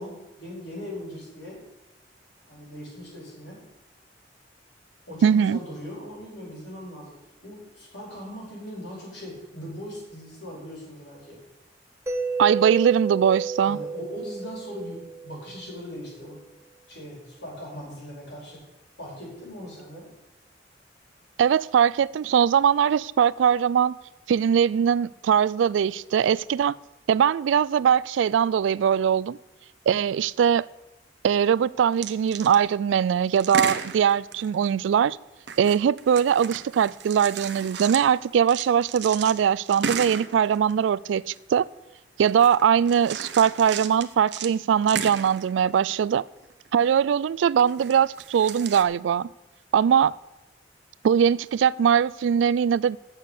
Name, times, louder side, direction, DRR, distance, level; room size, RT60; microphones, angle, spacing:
voice 1, 0.0-1.6 2.5-3.6 5.1-7.1 7.4-11.4 13.6-16.4 16.9-18.6 19.0-20.1, left 1 dB, 65° left, 4.6 m, -39 dB
voice 2, 5.2-5.6 12.4-13.8 21.4-24.0 24.3-26.7 27.1-29.4 29.9-30.7 31.2-35.2 35.6-41.7 42.2-46.2 46.7-49.3 49.7-50.2 51.0-53.0, right 8 dB, 85° right, 0.3 m, -21 dB
Mallet percussion, 12.1-15.8, right 4 dB, 15° right, 0.7 m, -32 dB
sound 1, 32.0-32.6 33.4-34.7 35.5-41.1 41.3-41.4 42.3-44.6 44.8-46.0 46.3-46.8 47.6-48.8, right 6 dB, 65° right, 0.8 m, -34 dB
8.1 x 6.6 x 8.3 m
head